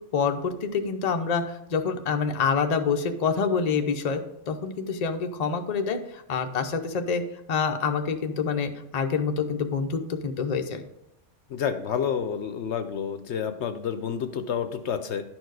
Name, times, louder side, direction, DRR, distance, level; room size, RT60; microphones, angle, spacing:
voice 1, 0.1-4.2 4.5-7.2 7.5-10.8, left 5 dB, 40° left, 6 dB, 0.6 m, -27 dB
voice 2, 11.5-15.2, left 7 dB, 70° left, 9 dB, 0.9 m, -29 dB
11.0 x 4.6 x 4.7 m, 0.82 s
omnidirectional pair, 1.3 m